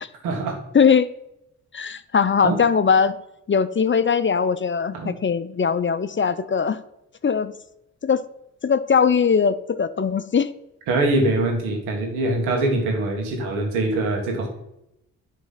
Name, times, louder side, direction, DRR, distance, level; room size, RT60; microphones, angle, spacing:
voice 1, 0.2-0.6 2.4-2.6 4.9-5.2 10.9-14.5, right 2 dB, 85° right, 2 dB, 1.9 m, -23 dB
voice 2, 0.7-1.1 1.7-3.2 3.5-6.8 7.2-7.5 8.0-8.2 8.6-10.5, left 6 dB, 30° left, 14 dB, 0.6 m, -20 dB
10.5 x 3.7 x 5.8 m, 0.84 s
hypercardioid pair, 40°, 38 cm